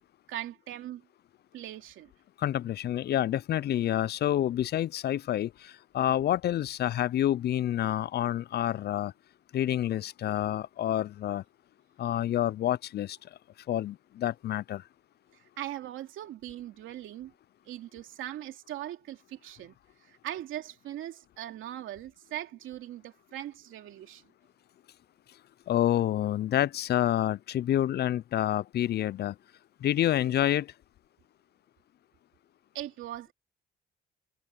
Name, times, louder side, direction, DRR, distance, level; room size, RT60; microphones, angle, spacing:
voice 1, 0.3-1.0 1.5-2.1 15.3-17.3 17.7-19.8 20.0-24.2 32.7-33.3, right 13 dB, 85° right, 2.8 m, -40 dB
voice 2, 2.4-9.1 9.5-11.4 12.0-13.2 13.7-14.8 25.7-29.4 29.8-30.7, left 12 dB, 55° left, 0.4 m, -28 dB
cardioid pair, 90°, 20 cm